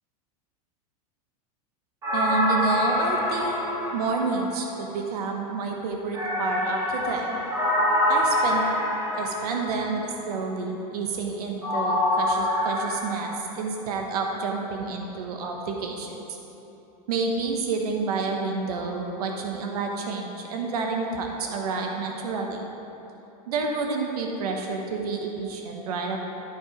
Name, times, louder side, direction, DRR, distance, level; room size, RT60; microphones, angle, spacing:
sound 1, 2.0-4.8 6.1-10.0 11.6-13.0, left 1 dB, 15° right, 1.9 m, -25 dB
voice 1, 2.1-3.6 3.9-7.4 8.1-8.8 9.1-16.1 17.1-22.6 23.5-26.2, right 4 dB, 85° right, 2 dB, 1.1 m, -29 dB
11.5 x 4.7 x 5.0 m, 2.9 s
supercardioid pair, 165°, 19 cm